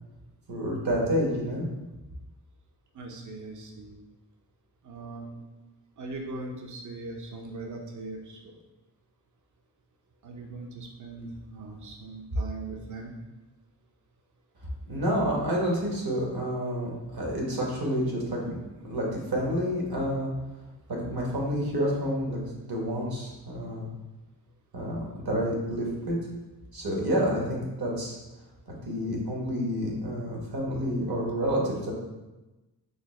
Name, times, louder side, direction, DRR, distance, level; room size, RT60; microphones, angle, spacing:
voice 1, 0.5-1.6 14.9-18.6 18.8-20.3 20.9-22.4 22.7-23.8 24.7-26.2 26.7-28.2 28.7-31.9, equal, 60° right, -3 dB, 1.1 m, -29 dB
voice 2, 2.9-4.0 4.8-5.4 6.0-8.4 10.2-13.2, right 3 dB, 45° right, 1 dB, 0.6 m, -40 dB
4.9 x 2.0 x 3.1 m, 1.1 s
cardioid pair, 45°, 42 cm